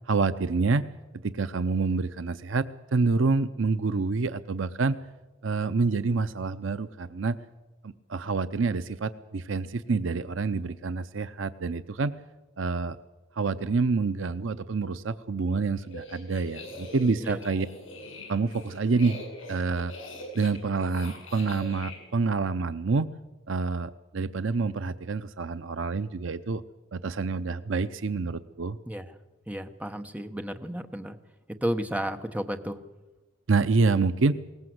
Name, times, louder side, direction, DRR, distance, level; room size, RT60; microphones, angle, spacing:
voice 1, 0.1-0.8 1.2-5.0 5.4-7.4 7.8-12.1 12.6-13.0 13.4-17.7 18.3-19.2 19.5-19.9 20.3-23.1 23.5-26.6 26.9-28.8 33.5-34.4, right 4 dB, 70° right, 13 dB, 0.7 m, -27 dB
sound 1, 15.8-22.0, left 2 dB, 75° left, 7.9 m, -43 dB
voice 2, 29.5-31.2 31.6-32.8, equal, 5° right, 7 dB, 1.2 m, -32 dB
21.5 x 19.0 x 7.9 m, 1.1 s
head